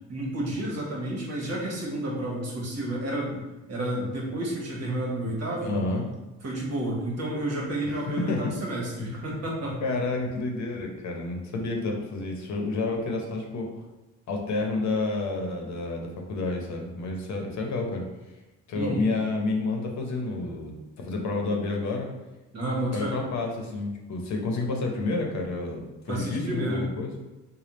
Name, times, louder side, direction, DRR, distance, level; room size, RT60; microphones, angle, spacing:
voice 1, 0.1-3.4 3.7-5.8 6.4-9.8 18.7-19.0 22.5-23.2 26.1-26.9, right 1 dB, 55° right, -2 dB, 1.2 m, -30 dB
voice 2, 5.6-6.0 7.8-7.9 8.3-8.7 9.0-9.2 9.8-13.8 14.3-18.1 18.7-20.7 21.0-22.1 22.9-27.1, left 3 dB, 65° left, 1 dB, 0.8 m, -30 dB
3.3 x 2.2 x 4.1 m, 1.1 s
cardioid pair, 90°, 30 cm